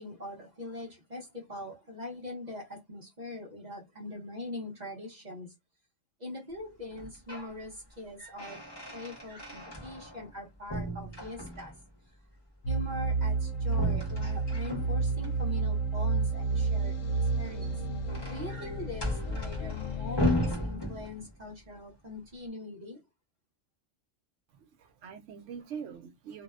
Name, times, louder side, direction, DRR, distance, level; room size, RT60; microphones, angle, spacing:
voice 1, 0.0-5.5 6.2-8.6 8.9-11.7 12.1-12.2 12.7-17.8 18.3-23.0, left 2 dB, 40° right, 0.7 m, -42 dB
sound 1, 6.9-7.6 7.9-10.4 10.7-11.9 13.7-15.3 17.3-21.5, left 1 dB, 25° left, 0.8 m, -35 dB
sound 2, 12.6-20.5, right 3 dB, 80° left, 1.0 m, -31 dB
voice 2, 24.5-26.4, right 7 dB, 75° right, 0.9 m, -43 dB
2.7 x 2.1 x 2.2 m
omnidirectional pair, 1.3 m